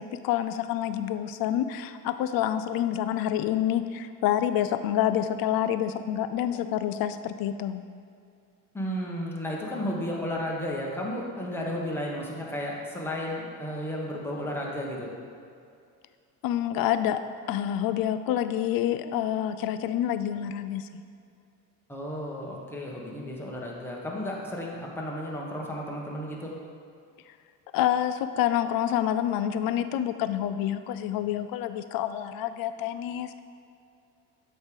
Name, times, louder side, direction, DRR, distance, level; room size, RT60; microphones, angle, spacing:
voice 1, 0.0-7.8 16.4-17.2 17.5-20.8 27.7-33.4, left 11 dB, 65° left, 11 dB, 0.5 m, -27 dB
voice 2, 8.7-15.1 21.9-26.5, equal, 5° left, -3 dB, 1.3 m, -33 dB
7.9 x 3.3 x 5.2 m, 2.4 s
supercardioid pair, 85°, 38 cm